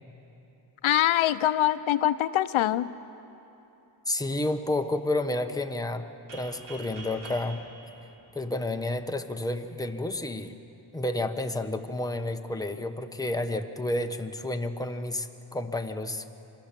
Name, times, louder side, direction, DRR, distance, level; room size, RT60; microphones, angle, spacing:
voice 1, 0.8-2.9, left 12 dB, 75° left, 13 dB, 0.7 m, -24 dB
voice 2, 4.1-6.0 6.3-7.6 8.3-10.5 10.9-16.2, left 2 dB, 10° left, 5 dB, 1.0 m, -30 dB
sound 1, 6.3-9.0, right 2 dB, 85° right, 7.1 m, -46 dB
26.0 x 19.0 x 7.5 m, 2.9 s
cardioid pair, 100°, 48 cm